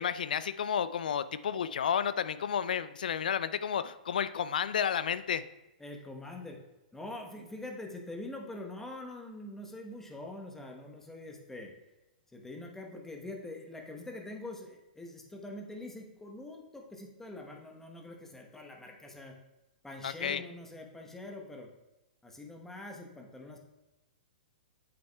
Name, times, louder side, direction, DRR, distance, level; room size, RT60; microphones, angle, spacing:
voice 1, 0.0-5.4 20.0-20.4, left 8 dB, 70° left, 15 dB, 0.4 m, -31 dB
voice 2, 5.8-6.6 6.9-11.7 12.3-19.4 19.8-21.7 22.2-23.6, left 2 dB, 5° left, 2 dB, 1.1 m, -44 dB
8.7 x 7.6 x 2.3 m, 0.98 s
hypercardioid pair, 115°, 5 cm